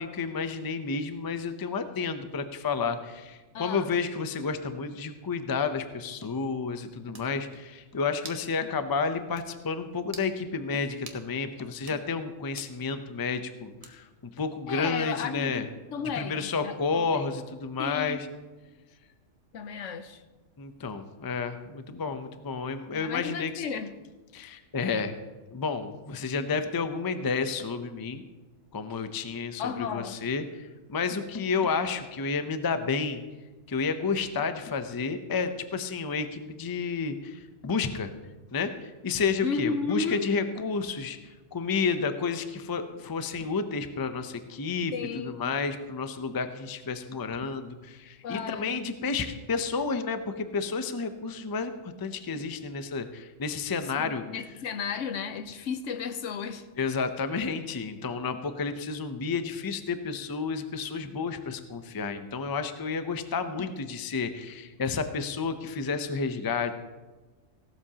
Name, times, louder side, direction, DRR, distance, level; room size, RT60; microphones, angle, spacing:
voice 1, 0.0-15.6 16.2-18.3 20.6-23.6 24.3-25.1 25.5-28.2 28.7-33.2 33.7-38.1 38.5-54.4 56.8-66.8, left 5 dB, 25° left, 9 dB, 0.5 m, -31 dB
voice 2, 3.5-3.9 14.7-17.3 17.8-18.2 19.5-20.2 22.9-23.9 29.6-30.2 39.4-40.3 44.9-45.4 48.2-48.8 54.0-56.7, left 6 dB, 75° left, 10 dB, 1.1 m, -33 dB
sound 1, 6.7-6.8 7.1-7.3 8.2-8.5 8.9-9.0 9.4-9.5 10.1-10.3 11.1-11.2 11.8-12.0 12.6-12.8 13.8-14.2, right 3 dB, 30° right, 1.1 m, -45 dB
16.5 x 12.0 x 2.9 m, 1.3 s
omnidirectional pair, 1.3 m